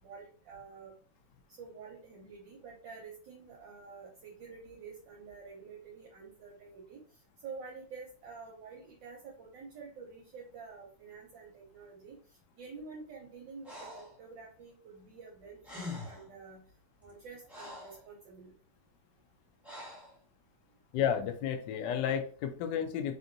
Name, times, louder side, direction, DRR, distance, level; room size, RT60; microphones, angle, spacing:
voice 1, 0.0-0.9 1.6-7.0 7.4-16.6 17.0-18.5, right 5 dB, 70° right, -3 dB, 1.4 m, -49 dB
Breathing, 13.6-14.2 15.3-15.4 15.6-16.3 17.0-18.0 19.6-20.2, left 2 dB, ahead, 0.4 m, -44 dB
voice 2, 20.9-23.2, left 8 dB, 75° left, 6 dB, 1.0 m, -32 dB
3.5 x 2.6 x 2.5 m, 0.42 s
omnidirectional pair, 2.3 m